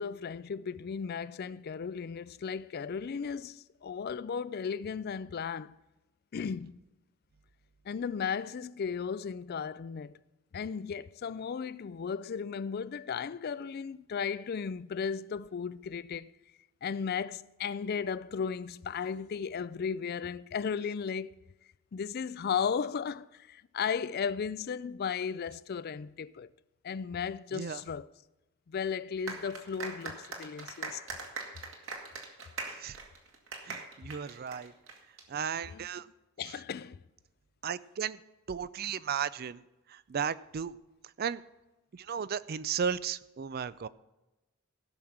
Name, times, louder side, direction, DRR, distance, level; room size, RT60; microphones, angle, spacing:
voice 1, 0.0-5.7 6.3-6.8 7.9-10.1 10.5-16.3 16.8-21.4 21.9-26.5 26.8-28.1 28.7-31.0 35.7-35.9 36.4-37.0, left 6 dB, 45° left, 0.4 m, -35 dB
sound 1, 29.3-35.2, right 4 dB, 60° right, 2.1 m, -41 dB
voice 2, 33.7-34.7 35.3-36.1 37.6-38.2 38.5-39.6 40.1-40.7 41.2-41.4 41.9-43.9, right 7 dB, 45° right, 0.4 m, -34 dB
16.0 x 6.4 x 5.9 m
head